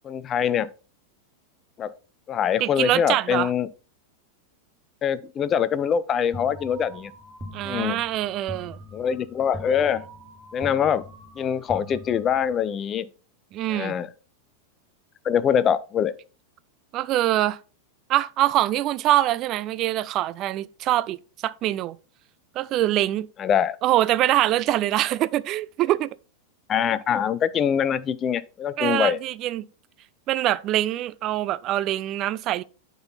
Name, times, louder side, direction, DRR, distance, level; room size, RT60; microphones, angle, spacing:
voice 1, 0.0-0.7 1.8-1.9 2.3-3.7 5.0-7.1 7.6-8.0 8.9-10.0 10.5-11.0 11.4-13.1 13.7-14.1 15.2-16.1 23.4-23.8 26.7-29.2, left 8 dB, 25° left, 0.4 m, -24 dB
voice 2, 2.6-3.5 7.5-8.8 13.5-13.9 16.9-17.6 18.1-22.0 22.6-23.3 23.8-26.2 28.8-29.7 30.3-32.6, right 14 dB, 35° right, 0.3 m, -24 dB
sound 1, 6.3-12.7, equal, 15° right, 1.4 m, -42 dB
9.4 x 4.0 x 4.0 m
figure-of-eight pair, 90°, 0 cm